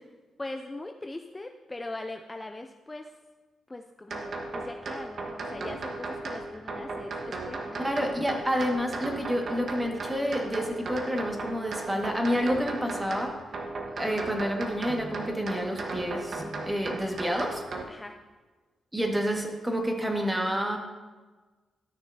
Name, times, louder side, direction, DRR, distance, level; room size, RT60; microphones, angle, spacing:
voice 1, 0.4-3.2 3.7-8.2 17.9-18.2, left 2 dB, 20° left, 5 dB, 0.5 m, -41 dB
sound 1, 4.1-17.8, right 3 dB, 60° right, 1.2 m, -36 dB
voice 2, 7.8-13.3 13.9-17.6 18.9-20.8, equal, 15° right, 2 dB, 1.6 m, -29 dB
13.0 x 6.3 x 2.7 m, 1.3 s
supercardioid pair, 60°, 0 cm